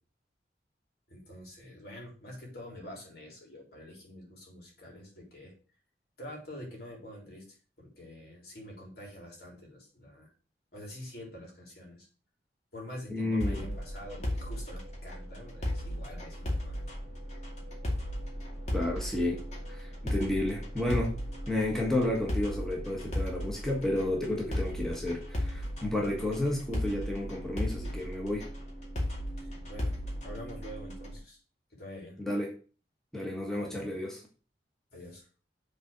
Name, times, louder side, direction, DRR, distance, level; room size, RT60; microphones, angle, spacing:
voice 1, 1.1-5.5 6.2-10.3 10.7-12.1 12.7-16.8 29.4-30.0 30.2-31.4 31.7-32.2 33.5-34.0 34.9-35.2, left 1 dB, 60° left, -1 dB, 3.8 m, -46 dB
voice 2, 13.1-13.7 18.7-19.4 19.7-21.1 21.5-28.4 32.2-32.5 33.1-34.2, left 1 dB, 5° left, -1 dB, 1.4 m, -31 dB
sound 1, 13.4-31.2, left 1 dB, 40° left, 2.3 m, -36 dB
7.3 x 4.2 x 6.3 m, 0.37 s
head